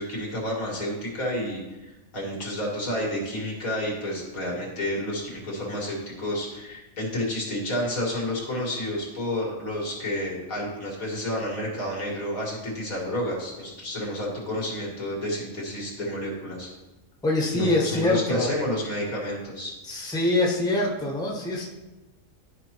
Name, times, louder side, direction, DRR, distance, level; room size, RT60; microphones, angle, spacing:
voice 1, 0.0-16.7 17.5-20.1, left 1 dB, 85° left, -3 dB, 2.4 m, -30 dB
voice 2, 17.2-18.5 19.8-21.6, left 2 dB, 5° left, -2 dB, 1.1 m, -24 dB
12.0 x 4.9 x 3.1 m, 1.0 s
omnidirectional pair, 1.4 m